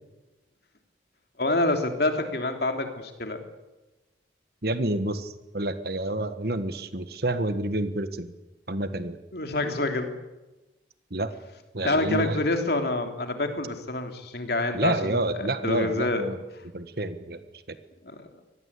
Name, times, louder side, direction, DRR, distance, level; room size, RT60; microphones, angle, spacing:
voice 1, 1.4-3.4 9.3-10.1 11.8-16.2 18.0-18.3, left 2 dB, 55° left, 5 dB, 3.4 m, -27 dB
voice 2, 4.6-8.3 8.7-9.2 11.1-11.3 11.7-12.4 14.7-16.4 16.7-17.4, right 1 dB, 55° right, 11 dB, 1.6 m, -28 dB
25.0 x 19.5 x 8.5 m, 1.1 s
head